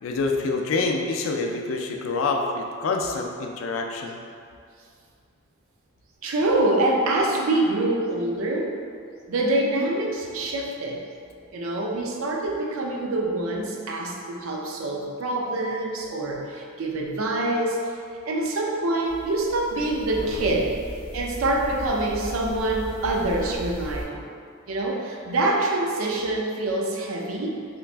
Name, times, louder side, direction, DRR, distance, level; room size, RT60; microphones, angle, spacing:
voice 1, 0.0-4.2 20.2-20.5, left 3 dB, 70° left, 2 dB, 0.3 m, -27 dB
voice 2, 6.2-8.8 9.3-11.0 11.5-17.9 18.3-20.8 21.1-24.2 24.7-27.6, right 2 dB, 80° right, -1 dB, 0.5 m, -25 dB
sound 1, 19.0-24.0, equal, 55° right, 0.9 m, -37 dB
3.3 x 3.0 x 2.4 m, 2.2 s
head